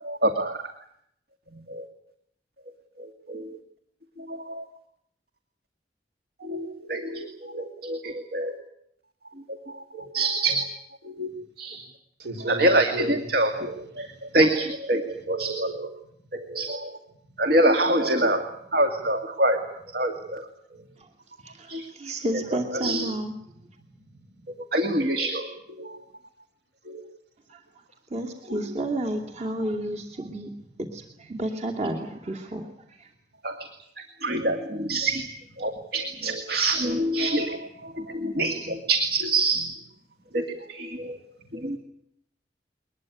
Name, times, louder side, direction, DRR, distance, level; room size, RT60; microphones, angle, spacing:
voice 1, 0.0-0.6 1.7-1.8 3.3-3.4 4.3-4.6 6.5-8.5 9.9-10.6 11.2-11.3 11.6-11.8 12.5-14.1 14.3-15.9 16.3-16.9 17.4-18.4 18.7-19.6 19.9-20.4 21.7-21.8 22.8-23.0 24.7-25.5 25.8-25.9 33.4-33.6 34.2-35.2 35.6-37.6 37.8-39.7 40.3-41.2 41.5-41.8, right 1 dB, 60° right, 5 dB, 2.2 m, -25 dB
voice 2, 12.2-14.4 15.1-15.3 17.3-17.4 18.3-18.6 20.8-20.9 23.5-24.5 30.2-30.3 30.7-30.8 35.6-35.8 36.5-36.6 37.3-38.1 38.6-38.8 39.9-40.0 40.9-41.7, right 1 dB, 75° right, 7 dB, 5.4 m, -41 dB
voice 3, 21.4-23.3 27.5-27.6 28.1-30.5 30.8-33.1, right 1 dB, 40° right, 3 dB, 2.6 m, -31 dB
22.0 x 20.5 x 9.4 m, 0.72 s
head